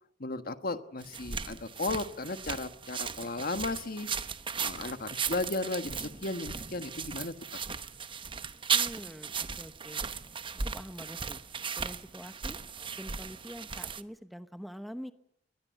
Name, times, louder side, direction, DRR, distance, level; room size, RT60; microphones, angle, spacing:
voice 1, 0.2-4.1 4.6-7.6, left 3 dB, 55° left, 10 dB, 1.4 m, -35 dB
sound 1, 1.0-14.0, right 6 dB, 30° right, 0.9 m, -36 dB
voice 2, 8.7-10.0 10.6-12.6 13.0-15.1, equal, ahead, 10 dB, 0.9 m, -45 dB
22.5 x 20.0 x 9.1 m, 0.77 s
head